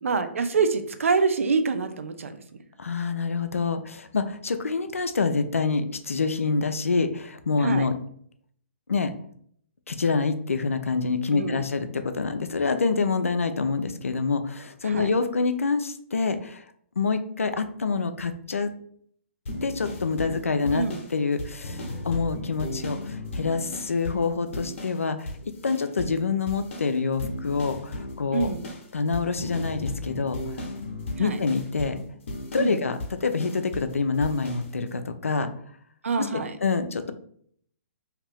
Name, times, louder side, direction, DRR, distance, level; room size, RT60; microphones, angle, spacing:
voice 1, 0.0-2.3 7.6-7.9 11.3-11.6 14.9-15.1 20.7-21.0 28.3-28.6 31.2-31.4 32.6-32.8 36.0-36.6, right 4 dB, 75° right, 9 dB, 0.5 m, -25 dB
voice 2, 2.8-7.9 8.9-9.1 9.9-16.6 17.0-18.7 19.6-28.5 28.9-30.4 31.2-32.0 32.5-35.5 36.2-37.1, left 4 dB, 90° left, 9 dB, 0.4 m, -26 dB
sound 1, 19.5-25.0 25.3-26.2 26.5-33.9 34.2-34.7, left 2 dB, 65° left, 0.9 m, -36 dB
2.8 x 2.5 x 3.3 m, 0.63 s
hypercardioid pair, 130°, 7 cm